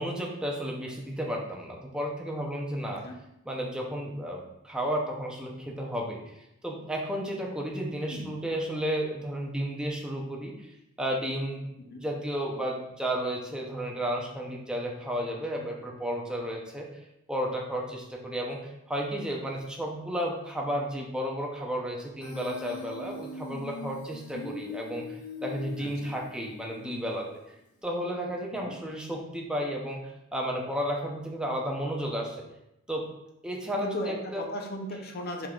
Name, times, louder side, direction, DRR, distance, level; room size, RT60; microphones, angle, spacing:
voice 1, 0.0-3.0 3.5-6.3 6.6-11.7 12.0-16.9 17.3-27.3 27.8-30.0 30.3-32.4 32.9-33.1 33.4-34.4, equal, 5° right, -1 dB, 0.5 m, -33 dB
voice 2, 2.8-3.2 8.0-8.3 11.8-12.0 25.8-26.1 28.5-28.8 33.8-35.5, left 1 dB, 45° left, 3 dB, 0.6 m, -37 dB
Human voice, 22.2-27.2, left 4 dB, 85° left, 0.9 m, -41 dB
4.7 x 3.6 x 2.3 m, 0.85 s
head